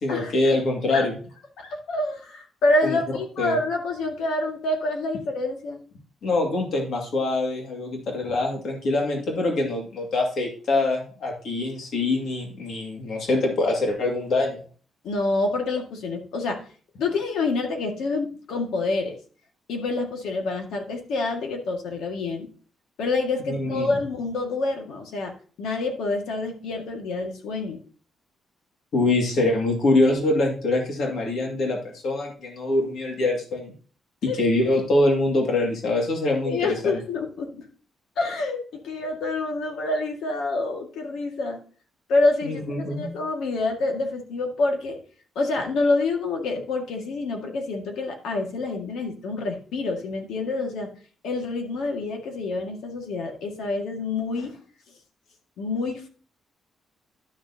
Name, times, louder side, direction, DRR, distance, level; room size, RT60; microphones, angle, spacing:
voice 1, 0.0-1.1 2.8-3.0 3.4-3.6 6.2-14.6 23.5-23.9 28.9-33.7 34.2-36.7 42.4-43.1, left 2 dB, 60° left, 0 dB, 2.3 m, -24 dB
voice 2, 1.6-5.8 15.0-16.6 17.0-19.1 19.7-22.5 23.0-25.3 25.6-27.8 34.3-34.4 36.4-37.6 38.2-41.6 42.1-45.0 45.4-50.9 51.2-54.6 55.6-56.1, left 2 dB, 85° left, 2 dB, 2.0 m, -27 dB
12.0 x 6.5 x 2.9 m, 0.42 s
cardioid pair, 155°, 0 cm